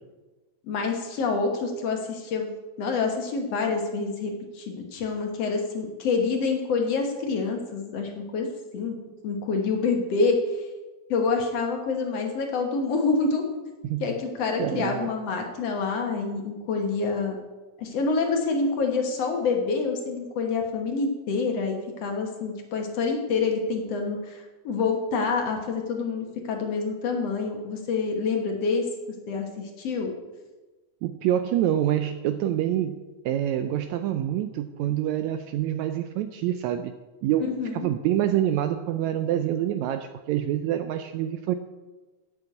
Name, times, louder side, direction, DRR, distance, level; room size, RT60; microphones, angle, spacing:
voice 1, 0.6-2.5 2.8-8.5 8.7-9.0 9.2-10.4 11.1-13.5 14.0-17.4 17.8-28.9 29.3-30.1 37.5-37.9, left 4 dB, 60° left, 2 dB, 2.1 m, -27 dB
voice 2, 14.6-15.1 31.0-36.9 37.2-37.5 37.7-41.6, right 11 dB, 80° right, 9 dB, 1.7 m, -26 dB
8.6 x 7.0 x 8.2 m, 1.2 s
omnidirectional pair, 3.6 m